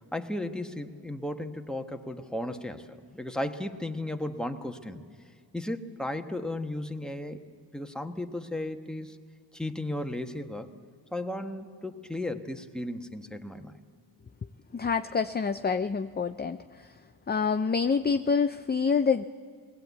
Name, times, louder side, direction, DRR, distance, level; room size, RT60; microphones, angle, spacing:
voice 1, 0.1-5.0 5.5-7.4 7.7-9.2 9.5-10.7 11.1-13.8, left 1 dB, ahead, 5 dB, 1.1 m, -35 dB
voice 2, 14.7-16.9 17.3-19.2, left 5 dB, 25° left, 9 dB, 0.4 m, -27 dB
20.0 x 17.0 x 8.2 m, 2.1 s
cardioid pair, 65°, 46 cm